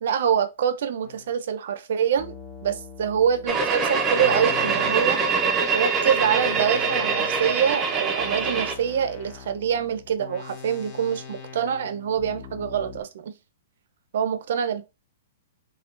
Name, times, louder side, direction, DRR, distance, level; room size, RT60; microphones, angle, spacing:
voice 1, 0.0-2.3 2.6-5.2 5.7-13.3 14.1-14.8, right 8 dB, 65° right, 0.5 m, -25 dB
sound 1, 1.0-1.4 2.2-5.6 6.2-13.0, left 6 dB, 40° left, 0.8 m, -42 dB
sound 2, 3.5-8.7, right 5 dB, 20° right, 0.5 m, -24 dB
3.6 x 2.2 x 2.4 m
hypercardioid pair, 155°, 0 cm